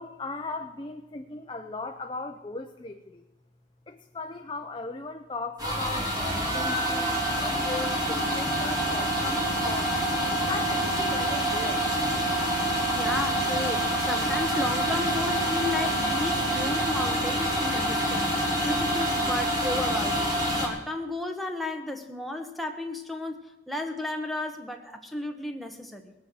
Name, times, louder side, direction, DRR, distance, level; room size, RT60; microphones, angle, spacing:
voice 1, 0.0-3.2 3.9-9.9 10.5-11.9, left 3 dB, 25° left, 5 dB, 0.6 m, -38 dB
sound 1, 5.6-20.7, right 1 dB, 20° right, 2.9 m, -26 dB
voice 2, 12.9-26.1, left 2 dB, ahead, 3 dB, 1.2 m, -33 dB
19.5 x 8.4 x 6.3 m, 1.0 s
head